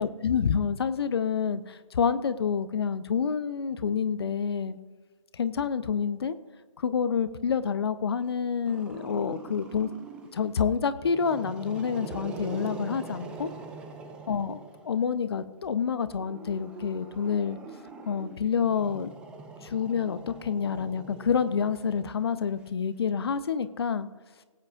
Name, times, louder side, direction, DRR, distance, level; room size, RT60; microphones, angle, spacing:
voice 1, 0.0-4.8 5.3-6.3 6.8-9.9 10.3-13.5 14.3-17.6 18.1-19.1 19.6-24.1, left 6 dB, 50° left, 13 dB, 0.7 m, -28 dB
Growling, 8.7-10.4 10.9-15.1 16.1-22.6, right 4 dB, 5° right, 0.5 m, -43 dB
19.5 x 8.9 x 2.4 m, 1.4 s
figure-of-eight pair, 145°, 17 cm